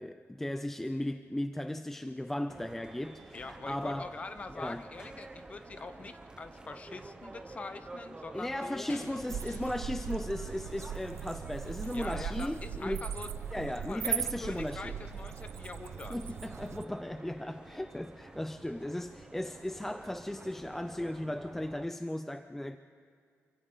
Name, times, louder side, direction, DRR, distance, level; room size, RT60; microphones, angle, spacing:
voice 1, 0.0-4.1 4.6-4.8 8.3-13.1 13.5-15.0 16.1-22.8, left 1 dB, 5° left, 0.4 m, -36 dB
sound 1, 2.5-21.9, right 2 dB, 15° right, 0.8 m, -50 dB
voice 2, 3.3-8.9 11.9-13.3 13.6-16.2, left 3 dB, 25° left, 0.9 m, -44 dB
sound 2, 8.4-16.5, left 3 dB, 45° left, 2.4 m, -56 dB
sound 3, 9.3-16.8, right 8 dB, 70° right, 0.7 m, -39 dB
27.5 x 24.5 x 3.9 m
wide cardioid pair, 160°, 5 cm